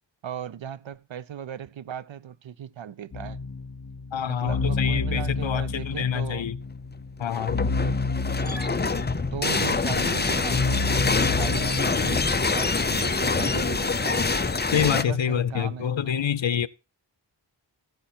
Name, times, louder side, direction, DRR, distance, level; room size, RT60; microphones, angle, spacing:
voice 1, 0.2-3.4 4.3-6.5 7.8-8.0 8.4-8.8 9.1-14.3 14.9-16.3 16.6-16.7, right 9 dB, 85° right, 0.6 m, -37 dB
sound 1, 3.1-12.2, left 3 dB, 50° left, 1.0 m, -30 dB
voice 2, 4.1-6.6 7.2-7.6 14.7-16.7, left 8 dB, 80° left, 0.6 m, -26 dB
sound 2, 7.2-15.0, left 4 dB, 25° left, 0.5 m, -25 dB
14.5 x 5.2 x 4.3 m
wide cardioid pair, 60°, 45 cm